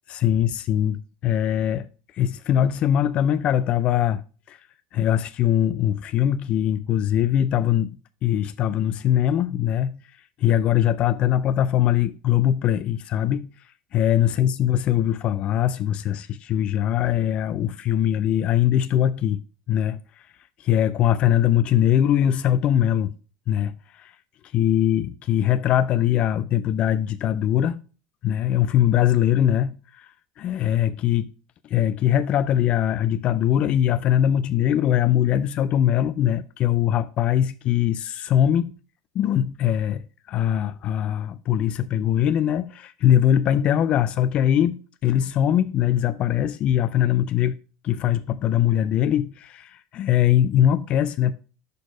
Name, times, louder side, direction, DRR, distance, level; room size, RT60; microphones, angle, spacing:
voice 1, 0.1-1.9 2.1-4.2 4.5-4.6 4.9-10.0 10.4-13.5 13.9-19.4 19.7-20.3 20.6-23.1 23.5-24.1 24.5-27.8 28.2-30.1 30.4-31.3 31.6-38.7 39.1-47.6 47.8-51.4, left 10 dB, 40° left, 0.4 m, -21 dB
6.5 x 4.2 x 5.1 m
supercardioid pair, 130°, 3 cm